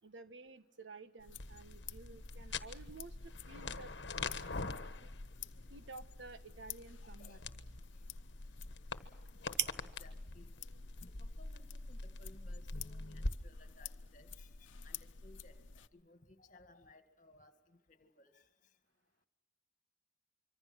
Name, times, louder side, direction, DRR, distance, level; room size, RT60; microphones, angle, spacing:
voice 1, 0.0-3.1 3.5-3.9 5.0-5.1 5.7-7.4, right 3 dB, 80° right, 11 dB, 1.3 m, -52 dB
sound 1, 1.2-15.9, left 5 dB, 90° left, 0.9 m, -51 dB
sound 2, 1.4-13.3, left 3 dB, 65° left, 1.3 m, -45 dB
sound 3, 5.2-13.0, right 11 dB, 60° right, 0.8 m, -48 dB
voice 2, 7.0-7.5 9.8-10.5 11.0-15.6 15.9-18.4, left 2 dB, 40° left, 8 dB, 2.0 m, -62 dB
25.5 x 24.5 x 6.2 m, 1.0 s
head